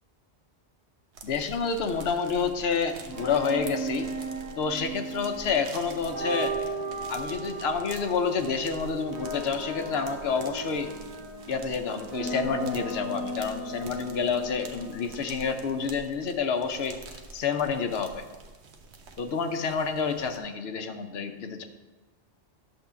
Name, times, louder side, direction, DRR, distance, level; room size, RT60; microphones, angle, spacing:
sound 1, 1.1-20.4, right 3 dB, 80° right, 1.1 m, -47 dB
voice 1, 1.2-4.1 4.6-6.5 7.1-10.9 11.5-17.0 17.3-18.2 19.2-21.6, left 5 dB, 70° left, 6 dB, 1.0 m, -29 dB
sound 2, 3.0-15.9, right 2 dB, 20° right, 1.7 m, -36 dB
10.5 x 3.8 x 6.9 m, 1.2 s
omnidirectional pair, 1.1 m